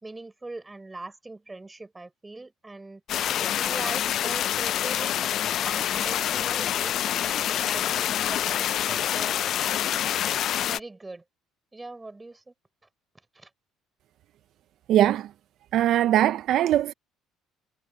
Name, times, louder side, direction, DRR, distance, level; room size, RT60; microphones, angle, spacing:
voice 1, 0.0-3.0 3.4-5.2 5.6-7.2 7.6-9.4 10.6-11.2 11.7-12.5 13.3-13.5, right 2 dB, 15° right, 5.1 m, -41 dB
sound 1, 3.1-10.8, left 11 dB, 55° left, 0.4 m, -26 dB
voice 2, 14.9-15.3 15.7-16.9, right 12 dB, 60° right, 0.5 m, -21 dB
cardioid pair, 110°, 0 cm